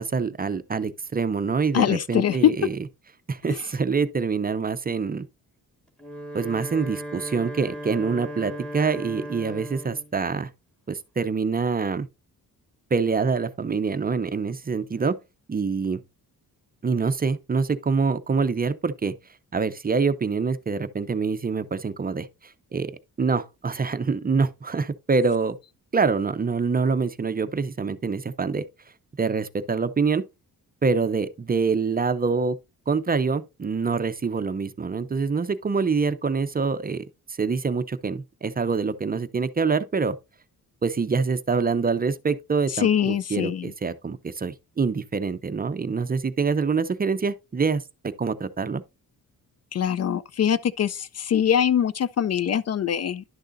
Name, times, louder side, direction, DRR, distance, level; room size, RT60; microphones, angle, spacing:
voice 1, 0.0-2.8 3.3-5.3 6.3-10.5 10.9-12.1 12.9-15.2 15.5-16.0 16.8-19.1 19.5-22.3 22.7-22.9 23.2-25.6 25.9-28.6 29.2-30.2 30.8-32.6 32.9-37.0 37.4-40.2 40.8-48.8, right 5 dB, 25° right, 0.5 m, -25 dB
voice 2, 1.7-2.5 3.5-3.6 42.7-43.7 49.7-53.2, left 9 dB, 45° left, 0.4 m, -23 dB
Wind instrument woodwind instrument, 5.9-10.1, equal, 5° left, 2.3 m, -36 dB
11.0 x 6.5 x 2.5 m
wide cardioid pair, 120°, 35 cm